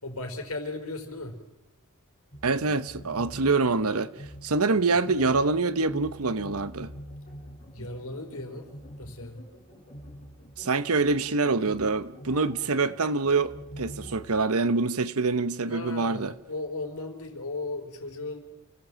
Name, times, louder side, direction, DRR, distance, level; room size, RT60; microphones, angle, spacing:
voice 1, 0.0-1.3 7.7-8.7 9.0-9.4 15.7-18.4, left 2 dB, 90° left, 4.5 m, -36 dB
sound 1, 2.3-14.3, equal, 30° left, 7.8 m, -45 dB
voice 2, 2.4-4.1 4.4-6.9 10.6-16.3, right 3 dB, 80° right, 1.1 m, -25 dB
29.0 x 17.5 x 7.7 m
head